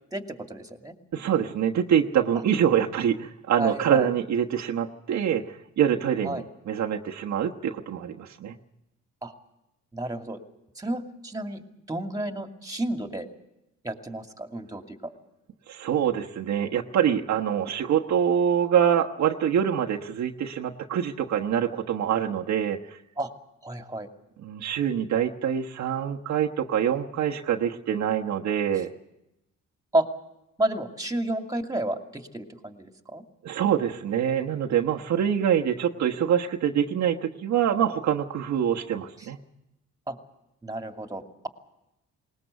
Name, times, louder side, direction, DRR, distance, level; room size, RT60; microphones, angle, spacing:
voice 1, 0.1-1.0 3.6-4.1 6.2-6.5 9.2-9.3 9.9-10.4 10.8-13.3 13.8-15.1 23.2-23.3 23.6-24.1 29.9-30.1 30.6-33.2 40.1-40.2 40.6-41.5, right 1 dB, 10° right, 5 dB, 2.4 m, -31 dB
voice 2, 1.1-8.5 15.7-22.8 24.4-28.9 33.4-39.4, right 9 dB, 65° right, 1 dB, 1.2 m, -25 dB
20.0 x 19.5 x 8.1 m, 0.89 s
cardioid pair, 90°, 30 cm